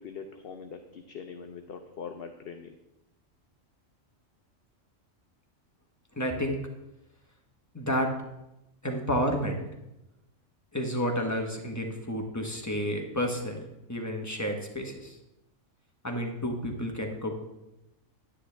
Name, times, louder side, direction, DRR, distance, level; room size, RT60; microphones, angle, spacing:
voice 1, 0.0-2.8, left 6 dB, 55° left, 6 dB, 0.8 m, -42 dB
voice 2, 6.1-6.6 7.7-8.1 8.8-9.7 10.7-15.2 16.0-17.4, equal, 15° left, 2 dB, 1.1 m, -30 dB
9.9 x 9.7 x 3.4 m, 0.92 s
omnidirectional pair, 1.4 m